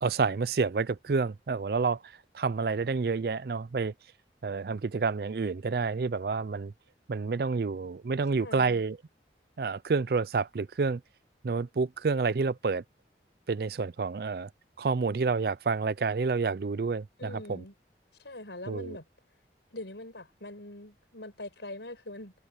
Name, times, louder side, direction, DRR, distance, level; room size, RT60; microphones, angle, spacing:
voice 1, 0.0-3.9 4.4-6.7 7.1-9.0 9.6-11.0 11.4-12.8 13.5-14.5 14.8-17.6 18.7-19.0, right 4 dB, 55° right, 0.4 m, -29 dB
voice 2, 8.4-8.8 17.2-17.7 18.2-19.0 19.7-22.3, left 1 dB, 85° left, 5.6 m, -43 dB
head